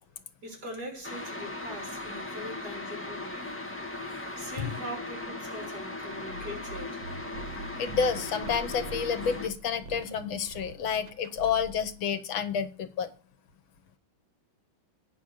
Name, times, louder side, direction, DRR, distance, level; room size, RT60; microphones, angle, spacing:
voice 1, 0.4-3.5 4.4-7.1, equal, 50° right, 4.1 m, -41 dB
sound 1, 1.0-9.5, left 2 dB, 10° left, 1.0 m, -38 dB
sound 2, 6.2-12.0, right 3 dB, 85° right, 1.8 m, -44 dB
voice 2, 7.8-13.1, left 7 dB, 80° left, 1.8 m, -29 dB
9.1 x 6.4 x 6.4 m
omnidirectional pair, 2.2 m